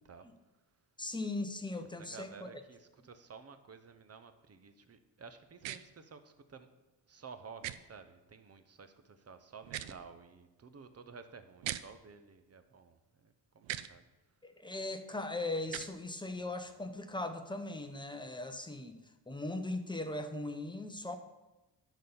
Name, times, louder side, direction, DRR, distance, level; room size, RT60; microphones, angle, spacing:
voice 1, 1.0-2.5 14.4-19.0 19.3-21.2, left 2 dB, 10° left, 7 dB, 0.8 m, -39 dB
voice 2, 2.0-6.7 7.1-14.0, right 5 dB, 35° right, 10 dB, 0.8 m, -53 dB
sound 1, 5.6-5.8 7.6-7.8 9.6-10.0 11.6-11.8 13.6-13.9 15.6-15.9, right 13 dB, 90° right, 0.5 m, -39 dB
11.0 x 4.1 x 7.0 m, 1.1 s
cardioid pair, 110°, 44 cm